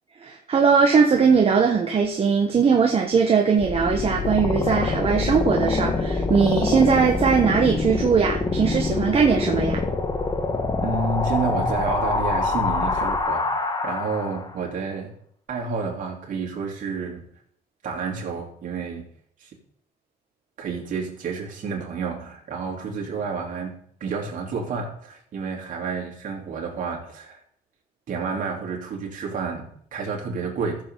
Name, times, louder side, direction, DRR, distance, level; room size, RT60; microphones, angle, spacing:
voice 1, 0.2-9.8, right 5 dB, 35° right, 2 dB, 1.1 m, -20 dB
sound 1, 3.6-14.5, left 3 dB, 25° left, 1.4 m, -25 dB
voice 2, 10.8-15.1 15.5-17.2 17.8-19.1 19.4-19.5 20.6-27.4 28.1-30.8, right 4 dB, 50° right, -1 dB, 3.2 m, -30 dB
14.0 x 7.3 x 3.9 m, 0.65 s
cardioid pair, 110°, 17 cm